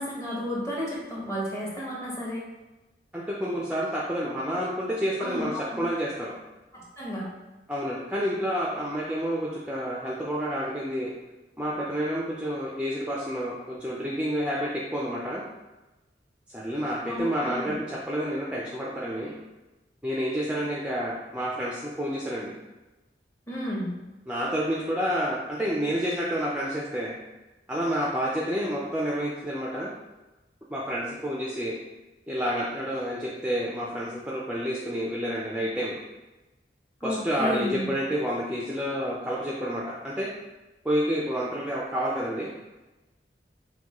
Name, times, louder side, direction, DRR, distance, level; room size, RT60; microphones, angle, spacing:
voice 1, 0.0-2.4 5.2-5.8 6.7-7.3 17.1-17.7 23.5-23.9 37.0-37.9, equal, 15° left, -5 dB, 0.9 m, -32 dB
voice 2, 3.1-6.3 7.7-11.1 11.6-15.4 16.5-19.3 20.0-22.5 24.3-27.1 27.7-29.9 30.7-31.8 32.3-36.0 37.0-40.3 40.8-42.5, equal, 5° right, -5 dB, 0.4 m, -29 dB
6.0 x 2.2 x 2.9 m, 1.1 s
head